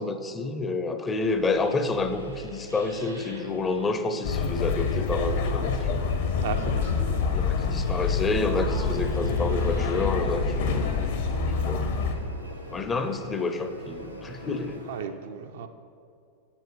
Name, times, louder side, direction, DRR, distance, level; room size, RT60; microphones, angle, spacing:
voice 1, 0.0-6.0 7.3-10.9 11.7-12.0 12.7-14.8, left 3 dB, 20° left, 8 dB, 0.5 m, -29 dB
sound 1, 1.1-14.8, left 1 dB, 85° left, 0.5 m, -43 dB
sound 2, 1.6-15.0, right 1 dB, 75° right, 1.7 m, -46 dB
sound 3, 4.2-12.2, left 5 dB, 55° left, 0.9 m, -26 dB
voice 2, 6.4-7.2 14.9-15.7, right 7 dB, 55° right, 7 dB, 0.5 m, -35 dB
7.5 x 7.1 x 4.8 m, 2.4 s
figure-of-eight pair, 90°, 0 cm